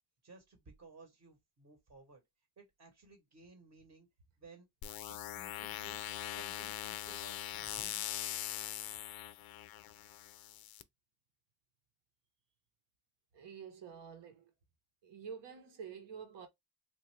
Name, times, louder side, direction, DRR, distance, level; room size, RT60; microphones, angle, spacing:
voice 1, 0.2-2.2 2.6-4.1 4.4-4.7 5.1-8.1, right 3 dB, 40° right, 1.1 m, -58 dB
sound 1, 4.8-10.8, left 13 dB, 55° left, 0.5 m, -42 dB
voice 2, 13.3-14.5 15.0-16.5, right 7 dB, 75° right, 1.2 m, -48 dB
3.0 x 2.5 x 3.2 m
cardioid pair, 125°, 43 cm